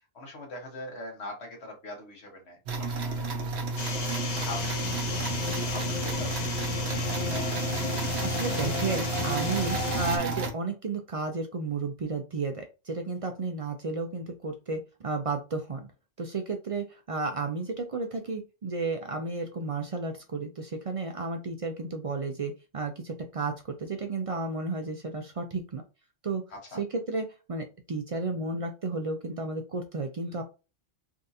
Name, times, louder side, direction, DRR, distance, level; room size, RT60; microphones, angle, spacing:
voice 1, 0.1-7.4 26.7-26.8, left 1 dB, 85° left, 1 dB, 1.5 m, -43 dB
sound 1, 2.7-10.5, right 3 dB, 85° right, 1.0 m, -31 dB
sound 2, 3.8-10.2, left 5 dB, 50° left, 0.7 m, -33 dB
voice 2, 8.2-15.9 16.2-25.8 26.2-26.4 26.7-30.4, right 3 dB, 50° right, 5 dB, 0.4 m, -33 dB
3.6 x 2.5 x 2.6 m, 0.29 s
omnidirectional pair, 1.1 m